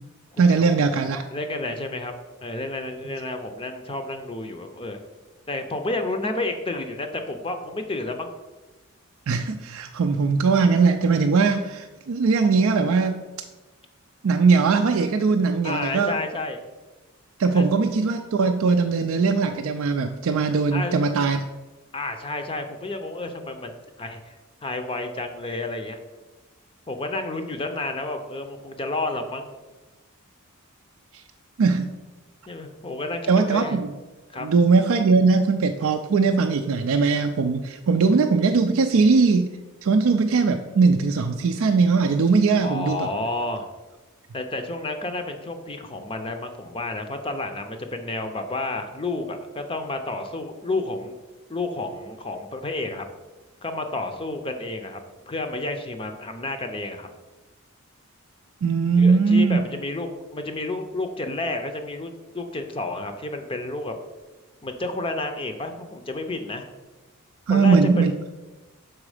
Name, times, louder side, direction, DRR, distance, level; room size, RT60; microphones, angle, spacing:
voice 1, 0.4-1.2 9.3-13.2 14.2-16.2 17.4-21.4 31.1-31.2 31.6-31.9 33.3-33.9 34.4-39.5 39.8-43.1 58.6-59.6 67.5-68.1, right 4 dB, 65° right, 5 dB, 0.4 m, -20 dB
voice 2, 1.3-2.1 2.4-5.0 5.5-8.3 15.6-16.6 17.5-17.7 20.7-21.0 21.9-23.7 24.0-26.0 26.9-29.5 32.5-33.8 34.3-34.5 42.6-43.7 44.3-51.1 51.5-53.0 53.6-55.0 55.3-57.1 59.0-63.9 64.6-66.7 67.5-68.0, left 2 dB, 25° left, 6 dB, 0.5 m, -30 dB
6.2 x 4.8 x 4.9 m, 1.2 s
head